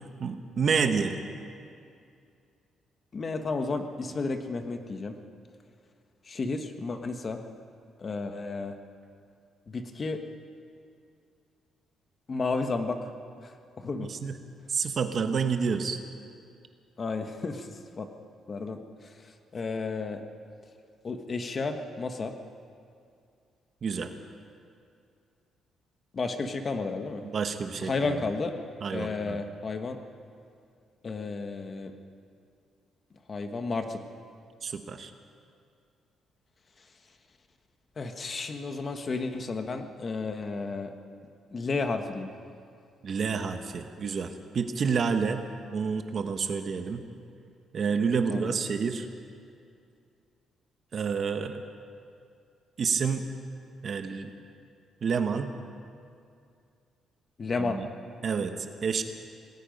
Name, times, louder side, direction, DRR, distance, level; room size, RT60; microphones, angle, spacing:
voice 1, 0.2-1.2 14.0-14.3 14.7-16.0 23.8-24.1 27.3-28.2 28.8-29.4 34.6-35.1 43.0-45.4 45.7-47.0 47.7-49.1 50.9-51.6 52.8-53.2 53.8-54.3 55.0-55.5 57.6-57.9 58.2-59.0, right 5 dB, 40° right, 7 dB, 1.1 m, -29 dB
voice 2, 3.1-5.1 6.3-7.4 8.0-8.8 9.7-10.2 12.3-13.0 13.4-14.1 17.0-17.7 18.0-18.1 18.5-18.8 19.0-19.1 19.5-20.2 21.0-22.3 26.1-27.2 27.8-28.5 28.9-30.0 31.0-31.9 33.3-34.0 38.0-40.9 41.5-42.3 48.3-48.6 57.4-57.8, left 3 dB, 30° left, 6 dB, 1.4 m, -32 dB
27.0 x 18.5 x 5.3 m, 2.4 s
cardioid pair, 145°, 0 cm